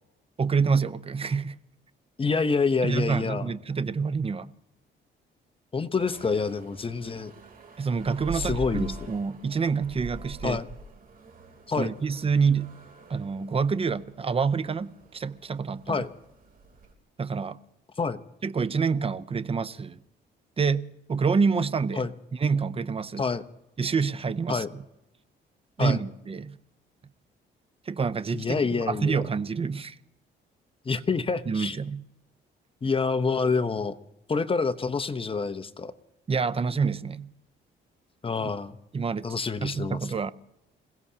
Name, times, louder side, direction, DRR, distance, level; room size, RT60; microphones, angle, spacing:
voice 1, 0.4-1.6 2.8-4.5 7.8-10.6 11.8-12.7 13.1-16.0 17.2-17.6 18.4-20.0 20.6-22.1 22.4-23.3 23.8-24.8 25.8-26.6 27.9-29.9 31.5-32.0 36.3-37.3 38.4-38.5 38.9-39.3 39.6-40.3, right 5 dB, 30° right, 0.7 m, -27 dB
voice 2, 2.2-3.5 5.7-7.3 8.3-8.9 10.4-10.7 11.7-11.9 15.9-16.1 18.0-18.2 22.0-22.1 23.2-23.4 24.5-24.7 25.8-26.0 28.3-29.2 30.8-31.8 32.8-33.9 34.3-35.9 38.2-38.8 39.2-40.0, left 4 dB, 25° left, 0.9 m, -27 dB
sound 1, 6.0-16.9, right 3 dB, 45° right, 3.3 m, -43 dB
27.0 x 16.5 x 2.8 m
cardioid pair, 90°, 20 cm